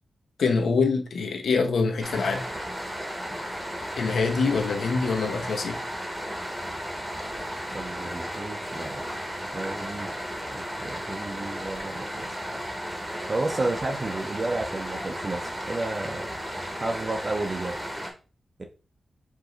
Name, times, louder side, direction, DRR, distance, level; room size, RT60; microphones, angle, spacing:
voice 1, 0.4-2.5 4.0-5.8, left 4 dB, 90° left, 0.9 m, -25 dB
sound 1, 2.0-18.1, equal, 10° right, 0.9 m, -34 dB
voice 2, 7.7-9.0 9.5-10.1 10.5-12.3 13.3-16.3 16.8-17.8 18.6-18.7, right 2 dB, 30° right, 0.5 m, -32 dB
4.8 x 2.6 x 3.8 m
wide cardioid pair, 180°, 0 cm